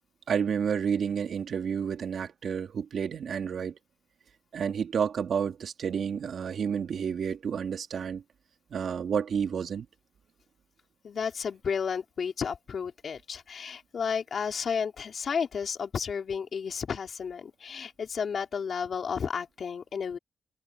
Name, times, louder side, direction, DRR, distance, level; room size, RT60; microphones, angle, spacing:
voice 1, 0.3-3.8 4.5-8.2 8.7-9.9, right 7 dB, 70° right, 2.6 m, -30 dB
voice 2, 11.0-20.2, left 6 dB, 60° left, 3.6 m, -32 dB
cardioid pair, 110°, 0 cm